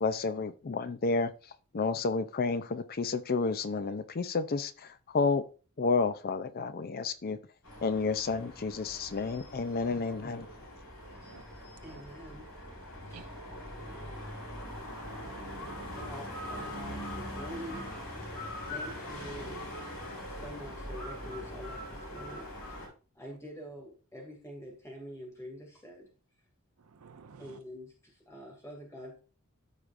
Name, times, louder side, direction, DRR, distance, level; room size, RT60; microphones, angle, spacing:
voice 1, 0.0-1.3 1.7-4.7 5.1-5.4 5.8-7.4 7.8-10.5, left 4 dB, 40° left, 0.5 m, -30 dB
sound 1, 7.6-22.9, left 1 dB, 80° left, 4.7 m, -42 dB
voice 2, 11.1-11.4 11.9-12.0 13.1-13.2 14.9-16.2 27.0-27.6, right 5 dB, 75° right, 0.6 m, -52 dB
voice 3, 11.8-12.5 13.1-13.3 13.7-14.2 16.0-17.9 18.2-18.3 18.7-19.6 20.3-22.7 23.1-26.1 27.4-29.2, equal, 15° left, 2.5 m, -46 dB
13.5 x 4.9 x 2.5 m
head